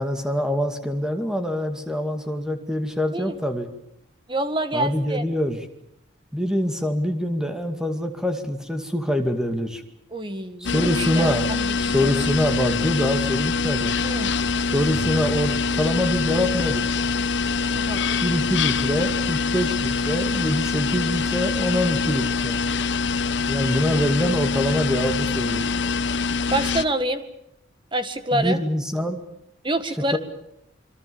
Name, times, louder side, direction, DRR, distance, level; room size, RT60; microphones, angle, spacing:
voice 1, 0.0-3.7 4.7-5.6 6.3-9.8 10.6-11.5 11.8-13.9 14.7-16.9 18.2-22.6 23.5-25.7 28.3-29.2 30.1-30.2, equal, 5° right, 6 dB, 2.3 m, -24 dB
voice 2, 4.3-5.2 10.1-11.7 12.0-12.1 14.0-14.3 17.7-18.0 26.5-27.2 27.9-28.6 29.6-30.2, right 1 dB, 25° right, 10 dB, 1.8 m, -26 dB
sound 1, 10.6-26.8, left 4 dB, 65° left, 1.0 m, -24 dB
sound 2, 14.9-16.7, right 5 dB, 60° right, 1.0 m, -39 dB
27.5 x 23.5 x 7.0 m, 0.80 s
head